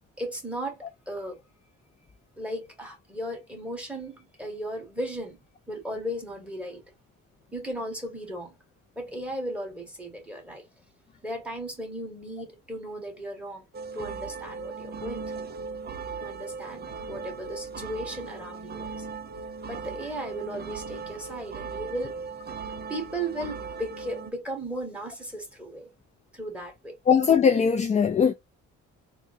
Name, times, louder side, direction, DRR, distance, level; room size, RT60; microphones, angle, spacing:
voice 1, 0.2-1.4 2.4-5.4 5.7-6.8 7.5-8.5 8.9-10.6 11.2-13.6 13.9-15.5 16.2-19.1 19.7-22.2 22.9-25.9 26.3-26.9, right 1 dB, 5° right, 1.6 m, -36 dB
sound 1, 13.7-24.3, right 5 dB, 35° right, 0.6 m, -38 dB
voice 2, 27.1-28.3, left 7 dB, 25° left, 0.3 m, -20 dB
3.6 x 2.2 x 2.6 m
cardioid pair, 90°, 30 cm